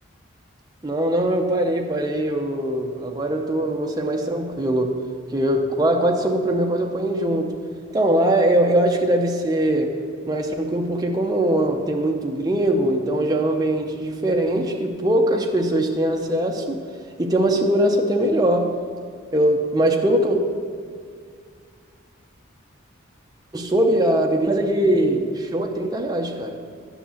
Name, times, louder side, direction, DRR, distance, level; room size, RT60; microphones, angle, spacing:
voice 1, 0.8-5.0 5.3-7.5 7.9-10.0 10.3-16.8 17.2-18.7 19.3-20.4 23.5-26.6, right 1 dB, 20° right, 2 dB, 0.8 m, -21 dB
10.0 x 6.1 x 7.1 m, 2.1 s
head